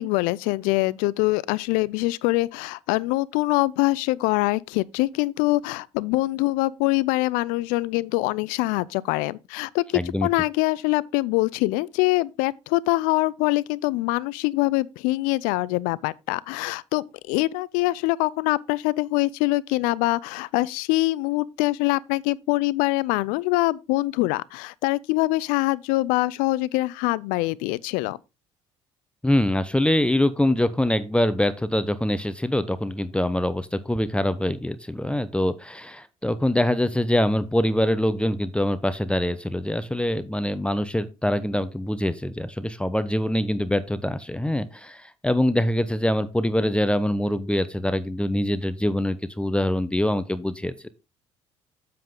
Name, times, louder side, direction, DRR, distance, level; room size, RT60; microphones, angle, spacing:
voice 1, 0.0-28.2, left 20 dB, 70° left, 0.4 m, -24 dB
voice 2, 9.9-10.3 29.2-50.9, left 1 dB, 5° left, 0.8 m, -24 dB
7.6 x 7.5 x 3.7 m
hypercardioid pair, 55°, 14 cm